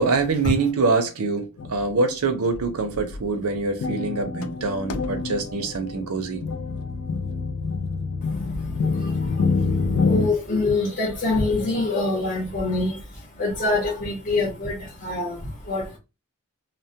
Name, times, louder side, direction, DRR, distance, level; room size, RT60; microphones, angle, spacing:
voice 1, 0.0-6.4, right 3 dB, 80° right, 0.6 m, -24 dB
sound 1, 1.6-1.9 2.5-2.7 2.9-10.3, left 4 dB, 80° left, 0.3 m, -27 dB
voice 2, 8.2-16.0, left 2 dB, 40° left, 0.8 m, -26 dB
2.2 x 2.1 x 2.7 m
head